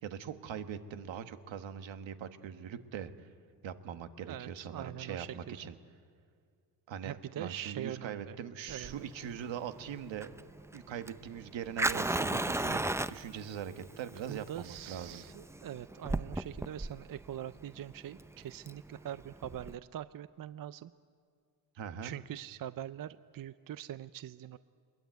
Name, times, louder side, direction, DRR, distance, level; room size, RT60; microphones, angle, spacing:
voice 1, 0.0-3.3 3.6-5.7 6.9-10.3 10.7-12.8 13.1-15.2 21.7-22.1, right 8 dB, 80° right, 8 dB, 1.6 m, -41 dB
voice 2, 4.2-5.6 7.0-8.4 8.7-9.1 14.3-20.9 22.0-24.6, right 11 dB, 50° right, 14 dB, 0.6 m, -43 dB
Fire, 8.7-19.7, right 2 dB, 5° right, 0.5 m, -36 dB
23.0 x 21.5 x 9.3 m, 2.2 s
cardioid pair, 95°, 44 cm